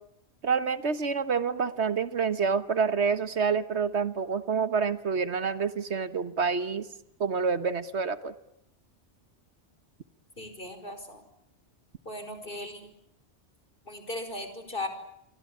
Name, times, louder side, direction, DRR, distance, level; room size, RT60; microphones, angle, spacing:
voice 1, 0.4-6.9 7.2-8.3, right 5 dB, 65° right, 12 dB, 1.6 m, -27 dB
voice 2, 10.4-11.2 12.1-12.9 13.9-14.9, left 1 dB, 50° left, 9 dB, 5.4 m, -37 dB
28.5 x 24.0 x 8.6 m, 0.78 s
omnidirectional pair, 1.2 m